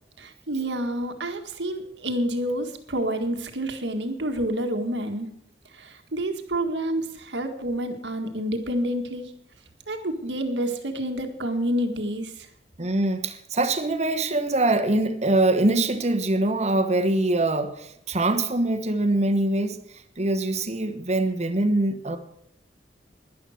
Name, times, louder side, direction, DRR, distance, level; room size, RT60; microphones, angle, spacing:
voice 1, 0.2-5.3 5.7-9.3 9.9-12.5, right 1 dB, 85° right, 1.8 m, -28 dB
voice 2, 12.8-19.8 20.2-22.2, right 2 dB, 40° right, 1.3 m, -23 dB
11.5 x 11.0 x 6.4 m
head